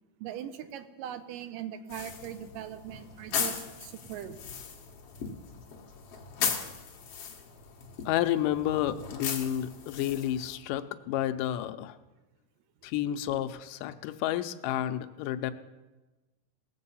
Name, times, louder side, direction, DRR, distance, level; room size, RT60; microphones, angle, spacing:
voice 1, 0.2-4.4, right 10 dB, 85° right, 10 dB, 2.5 m, -40 dB
sound 1, 1.9-10.6, left 6 dB, 55° left, 2.0 m, -37 dB
voice 2, 8.1-11.9 12.8-15.5, left 12 dB, 80° left, 10 dB, 2.2 m, -30 dB
19.0 x 7.5 x 5.5 m, 1.1 s
omnidirectional pair, 3.8 m